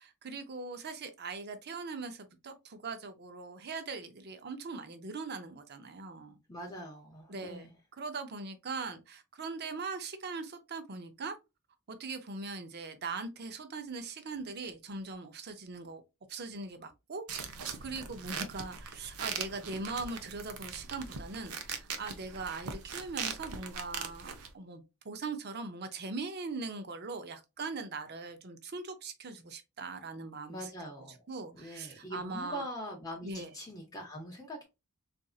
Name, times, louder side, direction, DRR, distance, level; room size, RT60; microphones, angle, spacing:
voice 1, 0.0-6.4 7.3-7.7 8.0-11.3 11.9-16.0 16.3-17.2 17.8-30.6 31.3-32.6 33.2-33.5, right 3 dB, 45° right, 0.6 m, -40 dB
voice 2, 6.5-7.8 30.5-31.2 31.5-34.6, equal, 15° left, 0.7 m, -43 dB
sound 1, 17.3-24.5, right 6 dB, 90° right, 0.7 m, -41 dB
4.0 x 2.6 x 2.4 m
head